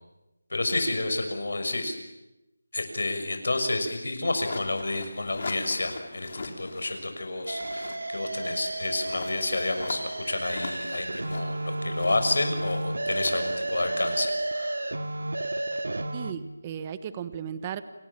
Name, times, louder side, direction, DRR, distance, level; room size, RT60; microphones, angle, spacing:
voice 1, 0.5-2.0 2.7-14.9, left 2 dB, 70° left, 6 dB, 6.5 m, -30 dB
sound 1, 4.3-7.0 7.4-14.5, left 3 dB, 45° left, 4.0 m, -41 dB
sound 2, 7.5-16.3, right 2 dB, 85° right, 2.2 m, -32 dB
voice 2, 16.1-17.8, right 8 dB, 15° right, 13 dB, 1.1 m, -35 dB
28.5 x 28.5 x 7.3 m, 0.96 s
figure-of-eight pair, 175°, 0 cm